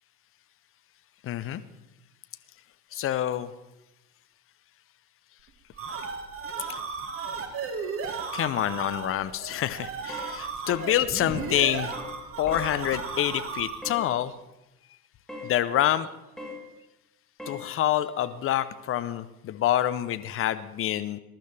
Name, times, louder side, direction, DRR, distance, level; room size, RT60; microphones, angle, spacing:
voice 1, 1.2-1.6 2.9-3.5 8.3-11.9 12.4-14.3 15.4-16.1 17.5-21.2, left 12 dB, 25° left, 13 dB, 0.7 m, -27 dB
sound 1, 5.5-14.0, right 5 dB, 25° right, 1.9 m, -35 dB
sound 2, 10.1-10.3 10.7-10.9 11.3-11.5 11.9-12.2 12.5-12.7 13.8-14.1 15.3-15.5 16.4-16.6 17.4-17.6, left 2 dB, ahead, 3.4 m, -40 dB
21.0 x 11.5 x 3.4 m, 0.95 s
hypercardioid pair, 90°, 49 cm